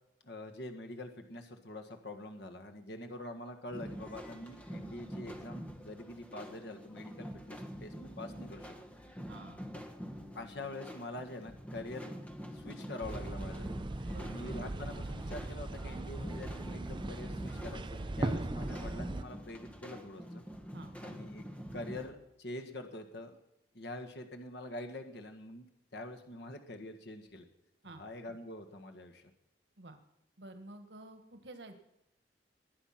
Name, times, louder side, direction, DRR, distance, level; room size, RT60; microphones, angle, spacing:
voice 1, 0.2-8.8 10.3-12.1 12.5-13.7 14.2-20.4 21.0-21.5 21.7-23.4 23.7-25.7 25.9-27.5 28.0-29.2, left 1 dB, 70° left, 5 dB, 1.6 m, -45 dB
sound 1, 3.7-22.1, equal, 10° left, 1.4 m, -46 dB
Cymbal, 3.9-5.4, left 5 dB, 50° left, 6.9 m, -69 dB
voice 2, 9.3-9.6 14.1-14.3 20.7-20.9 27.8-28.0 29.8-30.0 30.4-31.8, right 2 dB, 85° right, 7 dB, 1.6 m, -50 dB
sound 2, 13.0-19.2, right 2 dB, 30° right, 0.5 m, -39 dB
21.0 x 9.3 x 5.8 m, 0.88 s
head